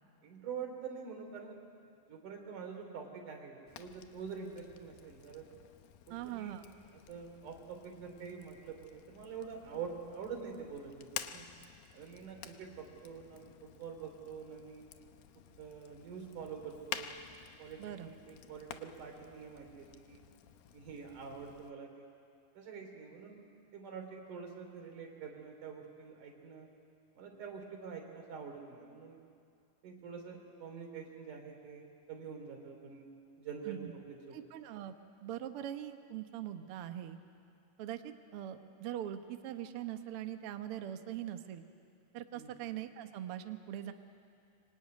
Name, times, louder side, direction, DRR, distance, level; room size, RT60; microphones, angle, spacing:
voice 1, 0.2-1.6 2.1-5.5 6.1-6.5 7.1-11.5 11.9-14.9 15.5-17.1 17.6-20.2 20.7-22.1 22.5-23.4 23.7-26.7 27.2-29.2 29.8-34.4 42.3-42.5, right 6 dB, 60° right, 3 dB, 4.5 m, -46 dB
Fire, 3.7-21.7, left 10 dB, 80° left, 2.7 m, -51 dB
voice 2, 6.1-6.6 17.8-18.1 33.6-33.9 34.3-35.0 35.2-37.2 37.8-41.6 42.1-43.9, right 11 dB, 80° right, 8 dB, 1.3 m, -42 dB
25.0 x 24.0 x 9.6 m, 2.4 s
omnidirectional pair, 4.1 m